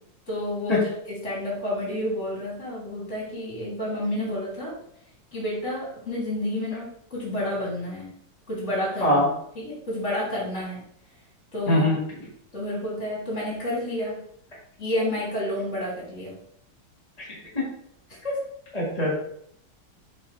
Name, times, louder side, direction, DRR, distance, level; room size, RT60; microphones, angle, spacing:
voice 1, 0.3-4.7 5.3-8.1 8.5-9.2 9.5-10.8 11.5-11.8 12.5-14.2 14.8-16.3 18.2-18.4, left 1 dB, 40° left, -5 dB, 3.4 m, -30 dB
voice 2, 11.7-12.3 17.2-17.6 18.7-19.2, left 1 dB, 20° left, -7 dB, 2.0 m, -23 dB
8.1 x 5.5 x 3.4 m, 0.68 s
omnidirectional pair, 1.9 m